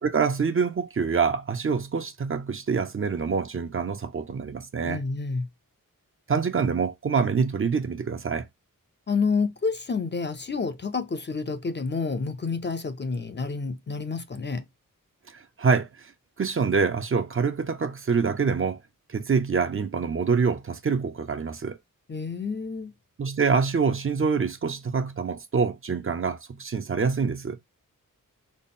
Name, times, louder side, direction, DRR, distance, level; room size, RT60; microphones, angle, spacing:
voice 1, 0.0-5.0 6.3-8.4 15.3-16.1 16.4-18.8 19.1-21.8 23.2-27.6, right 5 dB, 40° right, 0.5 m, -26 dB
voice 2, 4.8-5.5 9.1-14.6 22.1-22.9, left 4 dB, 35° left, 0.4 m, -29 dB
4.0 x 2.0 x 3.5 m
wide cardioid pair, 125°, 33 cm